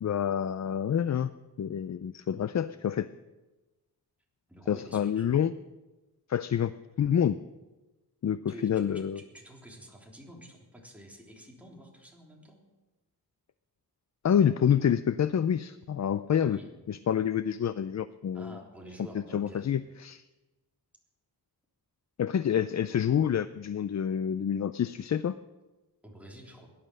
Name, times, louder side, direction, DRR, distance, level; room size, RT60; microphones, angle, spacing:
voice 1, 0.0-1.3 1.6-3.1 4.7-5.5 6.3-6.7 7.0-7.4 8.2-9.2 14.2-16.6 16.9-18.6 19.1-20.2 22.2-25.3, left 8 dB, 45° left, 14 dB, 0.4 m, -27 dB
voice 2, 4.5-5.2 8.5-12.6 16.4-16.7 18.3-19.7 26.0-26.7, equal, 5° right, -2 dB, 3.4 m, -49 dB
17.5 x 11.0 x 6.4 m, 1.1 s
wide cardioid pair, 130°, 38 cm